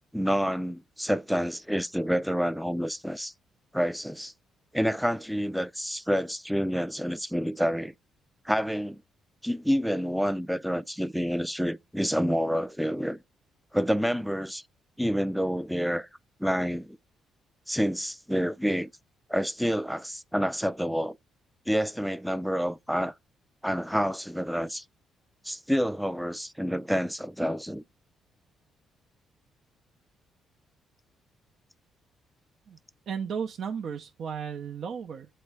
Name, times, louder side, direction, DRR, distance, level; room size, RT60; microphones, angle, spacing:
voice 1, 0.1-3.3 3.7-4.3 4.7-7.9 8.5-9.0 9.4-13.2 13.7-14.6 15.0-16.1 16.4-17.0 17.7-18.9 19.3-21.2 21.7-23.1 23.6-24.8 25.4-27.8, equal, ahead, 0.4 m, -28 dB
voice 2, 33.1-35.3, right 7 dB, 60° right, 0.7 m, -34 dB
7.7 x 3.2 x 4.7 m
cardioid pair, 90°, 0 cm